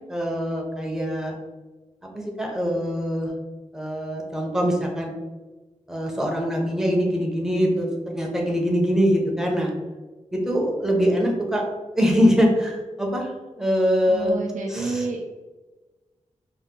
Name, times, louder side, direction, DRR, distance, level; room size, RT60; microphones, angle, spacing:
voice 1, 0.0-1.3 2.1-3.3 3.7-5.1 5.9-9.7 10.3-11.6 11.9-13.3 13.5-14.4 14.7-15.0, equal, 5° right, -1 dB, 0.6 m, -23 dB
voice 2, 14.1-15.2, right 3 dB, 80° right, 0 dB, 0.5 m, -29 dB
2.8 x 2.2 x 3.5 m, 1.2 s
wide cardioid pair, 100°, 13 cm